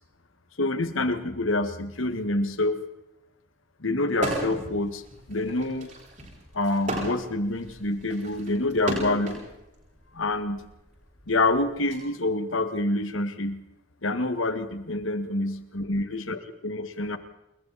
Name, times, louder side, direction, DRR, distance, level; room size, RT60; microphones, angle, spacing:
voice 1, 0.6-2.8 3.8-5.0 5.3-5.9 6.5-9.4 10.1-10.6 11.3-13.6 14.0-17.2, left 2 dB, 85° left, 10 dB, 1.8 m, -27 dB
sound 1, 4.1-4.7 5.1-9.4 10.3-12.0, right 1 dB, 40° right, 8.0 m, -33 dB
28.5 x 22.0 x 4.2 m, 0.93 s
head